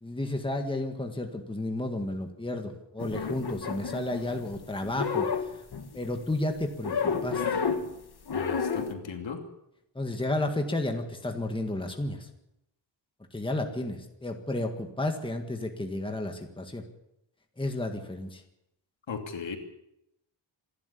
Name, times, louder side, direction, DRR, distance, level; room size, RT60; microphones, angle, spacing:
voice 1, 0.0-5.5 5.9-7.6 10.0-12.3 13.3-16.8 17.6-18.4, left 1 dB, 10° left, 4 dB, 1.8 m, -32 dB
sound 1, 3.0-4.5 4.8-6.1 6.8-7.9 8.3-8.9, left 5 dB, 55° left, 1.8 m, -30 dB
voice 2, 8.3-9.4 19.1-19.6, left 5 dB, 70° left, 4 dB, 2.9 m, -36 dB
26.5 x 12.0 x 8.4 m, 0.83 s
wide cardioid pair, 175°, 47 cm